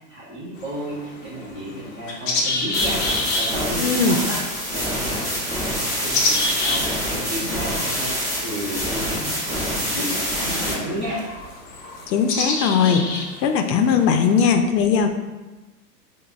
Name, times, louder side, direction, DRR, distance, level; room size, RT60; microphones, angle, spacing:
voice 1, 0.1-3.0 3.4-4.4 4.7-8.1 8.4-11.2, equal, 20° right, -7 dB, 1.4 m, -32 dB
sound 1, 0.6-14.5, left 2 dB, 30° left, 0.6 m, -30 dB
sound 2, 2.7-10.7, equal, 5° right, 1.4 m, -26 dB
voice 2, 3.8-4.2 12.1-15.1, left 6 dB, 80° left, 6 dB, 0.6 m, -19 dB
5.0 x 2.1 x 2.4 m, 1.1 s
hypercardioid pair, 130°, 50 cm